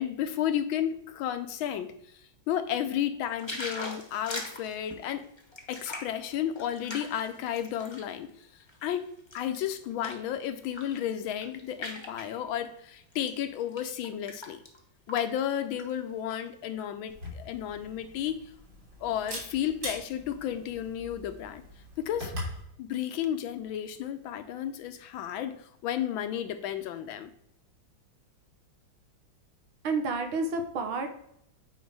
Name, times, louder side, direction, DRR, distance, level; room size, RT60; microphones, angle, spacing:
voice 1, 0.0-5.3 5.7-14.6 15.1-18.5 19.0-21.6 22.0-22.3 22.8-27.3, left 10 dB, 80° left, 1.5 m, -33 dB
sound 1, 3.4-8.1 8.6-10.3 10.6-11.0 11.2-12.3 13.1-13.3 13.7-14.8 15.1-15.2 15.5-16.3 16.8-16.9, left 2 dB, 20° left, 0.8 m, -41 dB
Camera, 17.1-22.6, equal, 60° right, 3.9 m, -42 dB
voice 2, 29.8-31.1, right 3 dB, 90° right, 1.9 m, -30 dB
9.2 x 4.7 x 4.7 m
omnidirectional pair, 2.2 m